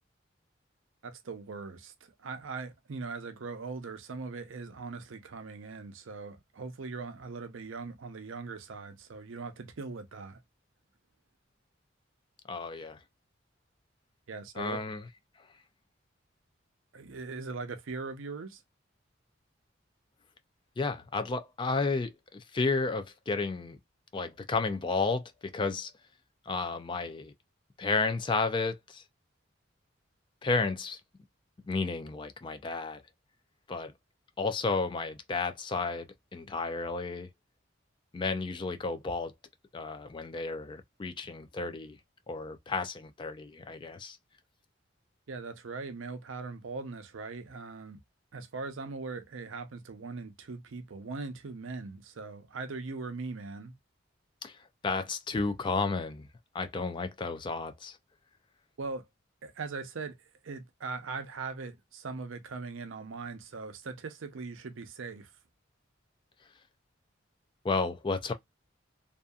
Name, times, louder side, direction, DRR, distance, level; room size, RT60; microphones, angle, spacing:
voice 1, 1.0-10.4 14.3-14.8 16.9-18.6 45.3-48.0 48.3-53.7 58.8-59.1 59.4-60.2 60.4-65.3, right 4 dB, 85° right, 0.6 m, -40 dB
voice 2, 12.5-13.0 14.6-15.0 20.8-23.8 24.1-25.9 26.5-27.3 27.8-29.0 30.4-31.0 31.7-33.0 33.7-33.9 34.4-37.3 38.1-39.3 39.7-42.0 42.3-44.2 54.4-54.5 54.8-56.3 56.5-58.0 67.6-68.3, left 3 dB, 25° left, 0.3 m, -32 dB
2.7 x 2.4 x 2.3 m
head